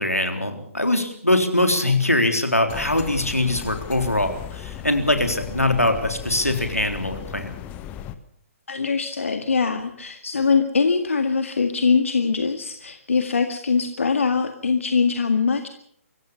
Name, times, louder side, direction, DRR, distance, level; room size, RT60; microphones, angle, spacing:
voice 1, 0.0-7.5, left 1 dB, 90° left, 6 dB, 3.8 m, -22 dB
sound 1, 2.7-8.2, left 10 dB, 20° left, 1.2 m, -36 dB
voice 2, 8.7-15.7, left 5 dB, 65° left, 7 dB, 1.9 m, -22 dB
24.5 x 15.5 x 7.1 m, 0.66 s
figure-of-eight pair, 130°, 8 cm